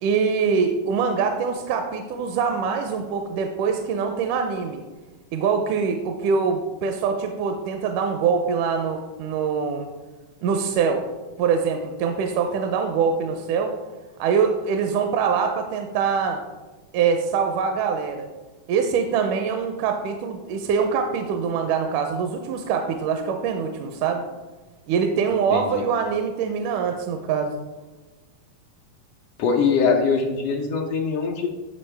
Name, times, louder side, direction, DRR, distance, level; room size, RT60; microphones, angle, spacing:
voice 1, 0.0-4.8 5.3-9.9 10.4-11.1 11.4-13.7 14.2-16.4 16.9-18.3 18.7-24.2 24.9-27.5, right 6 dB, 85° right, 5 dB, 2.1 m, -24 dB
voice 2, 29.4-31.5, left 5 dB, 90° left, 1 dB, 1.3 m, -22 dB
14.0 x 4.9 x 3.3 m, 1.3 s
omnidirectional pair, 3.6 m